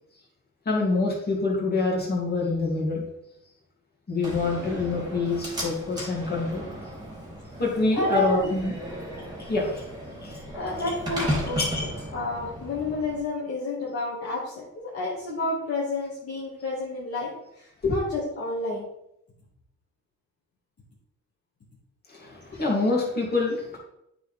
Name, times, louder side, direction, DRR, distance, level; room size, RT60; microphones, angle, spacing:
voice 1, 0.6-3.0 4.1-6.6 7.6-8.7 9.4-9.8 10.2-10.4 11.6-12.0 17.8-18.0 22.1-23.8, left 3 dB, 30° left, -3 dB, 2.8 m, -26 dB
Slam, 4.2-13.2, equal, 15° right, 2.6 m, -35 dB
voice 2, 8.0-8.5 10.5-11.6 12.1-18.9 22.5-22.6, left 2 dB, 50° left, -6 dB, 2.0 m, -30 dB
9.0 x 4.5 x 3.5 m, 0.81 s
cardioid pair, 90°, 30 cm